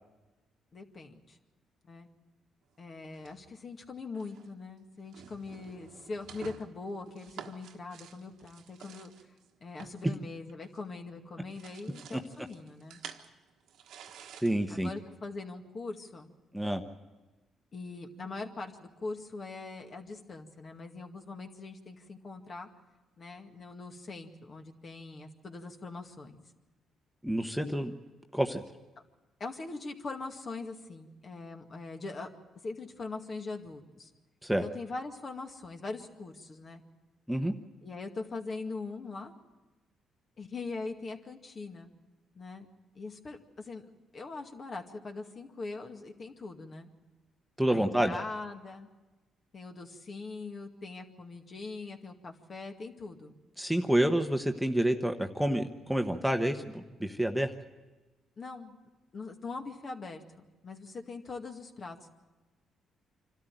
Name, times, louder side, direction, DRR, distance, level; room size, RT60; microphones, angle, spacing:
voice 1, 0.7-1.4 1.8-2.1 2.8-9.1 9.6-13.0 14.7-16.3 17.7-22.7 23.2-26.4 29.4-32.3 32.6-34.1 34.6-36.8 37.8-39.3 40.4-41.9 42.3-42.7 43.0-43.8 44.1-46.9 47.7-48.9 49.5-53.3 58.4-58.8 59.1-60.2 60.6-62.1, left 3 dB, 45° left, 4 dB, 2.1 m, -42 dB
sound 1, 3.1-3.7 4.1-4.5 5.0-11.0 11.3-15.0, right 8 dB, 80° right, 1.4 m, -51 dB
voice 2, 14.4-14.9 16.5-16.8 27.2-27.9 28.3-28.6 34.4-34.6 37.3-37.5 47.6-48.2 53.6-57.5, right 1 dB, ahead, 5 dB, 1.1 m, -28 dB
26.0 x 13.0 x 9.1 m, 1.2 s
cardioid pair, 90°, 0 cm